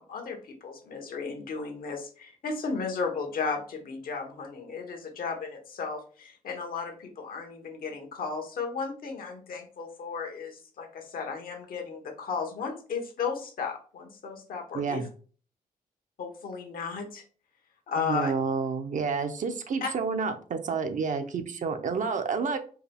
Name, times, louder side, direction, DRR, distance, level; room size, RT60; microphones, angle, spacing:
voice 1, 0.0-15.0 16.2-17.2 17.9-18.3 19.8-19.9, left 5 dB, 75° left, 3 dB, 1.1 m, -34 dB
voice 2, 14.7-15.1 18.0-22.6, right 5 dB, 60° right, 7 dB, 0.6 m, -29 dB
4.7 x 2.2 x 3.4 m, 0.40 s
cardioid pair, 95°, 15 cm